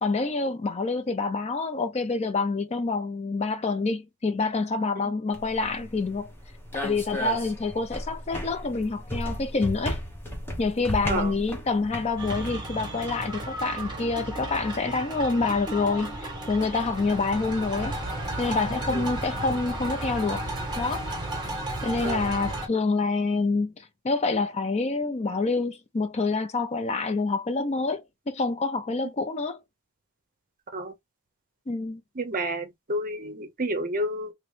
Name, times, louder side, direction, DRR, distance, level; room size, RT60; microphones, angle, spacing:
voice 1, 0.0-6.3 6.7-10.0 10.6-18.0 18.4-20.4 20.8-21.1 21.8-29.6 31.7-32.0, left 3 dB, 30° left, 0.5 m, -27 dB
sound 1, 5.3-12.5, left 1 dB, 10° left, 0.9 m, -35 dB
sound 2, 12.2-22.7, right 1 dB, 20° right, 1.6 m, -33 dB
voice 2, 32.2-34.3, right 1 dB, 40° right, 0.7 m, -30 dB
3.0 x 2.9 x 3.2 m
head